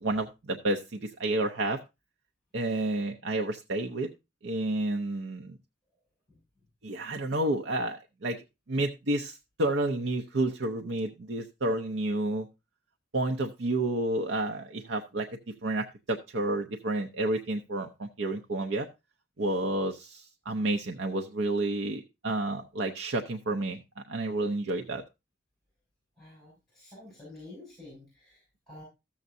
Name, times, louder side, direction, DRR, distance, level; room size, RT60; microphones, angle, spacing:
voice 1, 0.0-1.8 2.5-4.1 4.4-5.6 6.8-8.4 8.7-12.5 13.1-15.3 15.6-18.9 19.4-23.8 24.1-25.0, right 2 dB, 85° right, 3 dB, 0.7 m, -30 dB
voice 2, 26.2-28.8, left 2 dB, ahead, -5 dB, 6.4 m, -50 dB
13.5 x 7.2 x 2.6 m, 0.25 s
head